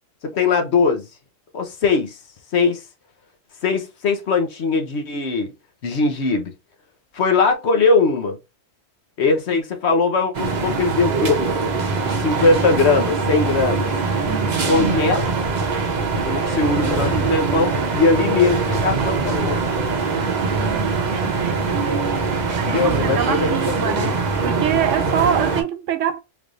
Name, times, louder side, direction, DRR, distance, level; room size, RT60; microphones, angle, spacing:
voice 1, 0.2-1.0 1.5-2.2 2.5-2.8 3.6-5.5 5.8-6.5 7.1-8.4 9.2-11.5 12.0-13.9 14.6-15.3 16.2-19.6 22.6-23.6 23.8-24.2, left 4 dB, 60° left, 1.0 m, -20 dB
sound 1, 10.3-25.6, right 4 dB, 45° right, 0.7 m, -22 dB
voice 2, 14.2-14.7 20.2-22.3 22.6-26.2, right 9 dB, 75° right, 0.9 m, -26 dB
3.4 x 3.2 x 2.5 m
omnidirectional pair, 1.3 m